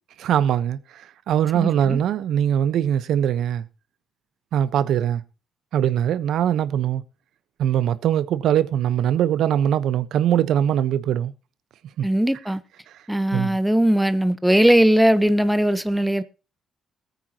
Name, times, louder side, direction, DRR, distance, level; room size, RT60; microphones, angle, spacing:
voice 1, 0.2-3.6 4.5-5.2 5.7-7.0 7.6-11.3 12.0-12.1 13.3-13.6, right 10 dB, 75° right, 1.0 m, -22 dB
voice 2, 1.5-2.0 12.0-12.6 13.1-16.2, right 1 dB, 5° right, 1.1 m, -19 dB
20.5 x 9.4 x 3.0 m
cardioid pair, 90°, 0 cm